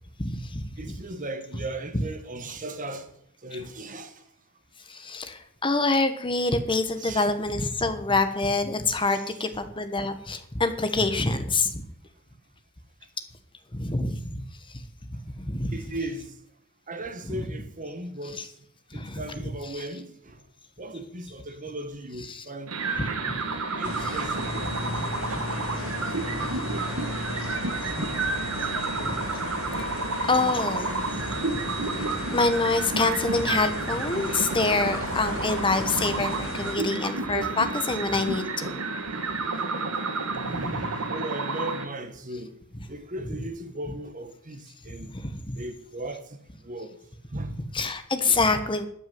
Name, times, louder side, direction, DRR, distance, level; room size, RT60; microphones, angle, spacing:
voice 1, 0.2-0.9 4.9-11.8 13.7-14.4 15.4-15.8 17.3-17.4 18.4-18.5 18.9-19.2 19.7-19.8 22.3-22.4 23.0-23.4 24.0-24.1 24.9-25.1 29.1-29.2 30.3-31.4 31.9-38.7 45.1-45.6 47.7-48.9, left 3 dB, 25° left, 1.2 m, -26 dB
voice 2, 0.8-3.1 3.4-4.2 7.0-7.3 9.0-9.2 15.7-16.3 16.9-18.5 18.9-20.4 20.8-22.8 23.8-24.8 40.3-42.6 42.9-45.1 45.5-46.4 46.6-47.0 47.3-47.6, right 1 dB, 35° right, 1.4 m, -37 dB
sound 1, 22.7-41.8, right 3 dB, 70° right, 1.7 m, -31 dB
sound 2, 23.8-36.8, left 2 dB, 65° left, 2.8 m, -35 dB
13.0 x 6.3 x 9.3 m
head